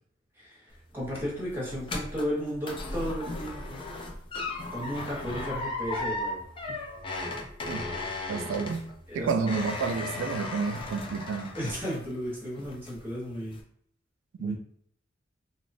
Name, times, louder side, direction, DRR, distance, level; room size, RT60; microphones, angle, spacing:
voice 1, 0.4-3.8 4.7-6.4 6.7-6.8 9.1-9.3 11.5-13.6 14.4-14.6, equal, 10° right, 0.9 m, -34 dB
sound 1, 0.7-12.3 12.6-13.1 13.5-13.6, left 2 dB, 25° left, 0.4 m, -36 dB
voice 2, 8.3-8.9 9.1-11.5 14.4-14.6, right 5 dB, 80° right, 0.3 m, -30 dB
2.9 x 2.1 x 2.5 m
head